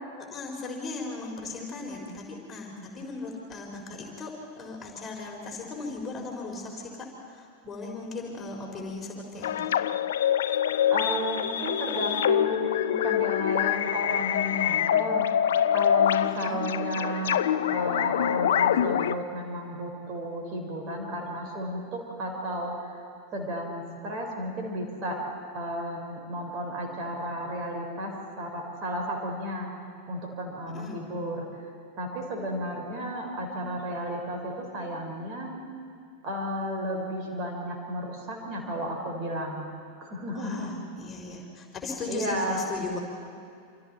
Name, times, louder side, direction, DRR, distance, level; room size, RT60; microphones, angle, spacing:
voice 1, 0.2-9.7 16.3-16.8 30.6-31.1 40.3-43.0, left 3 dB, 20° left, -1 dB, 4.4 m, -38 dB
sound 1, 9.4-19.1, left 9 dB, 60° left, 0.6 m, -25 dB
voice 2, 10.9-15.3 15.7-17.4 17.7-22.7 23.3-25.2 25.5-29.7 30.1-31.4 32.0-35.5 36.2-39.7 40.0-40.8 42.1-42.6, equal, 35° right, 1 dB, 4.6 m, -33 dB
27.5 x 26.5 x 4.3 m, 2.5 s
figure-of-eight pair, 90°, 0 cm